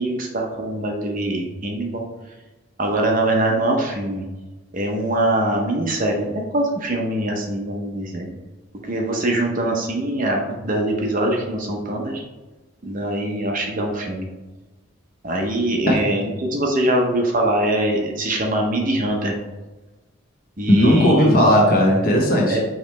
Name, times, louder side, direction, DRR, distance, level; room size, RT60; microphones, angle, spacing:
voice 1, 0.0-2.0 2.8-4.3 4.7-8.3 8.9-12.2 12.8-14.3 15.2-19.3 20.6-21.4 22.5-22.7, right 1 dB, 40° right, 1 dB, 0.7 m, -23 dB
voice 2, 15.9-16.2 20.7-22.6, equal, 45° left, -1 dB, 1.0 m, -16 dB
5.0 x 3.2 x 3.2 m, 1.1 s
head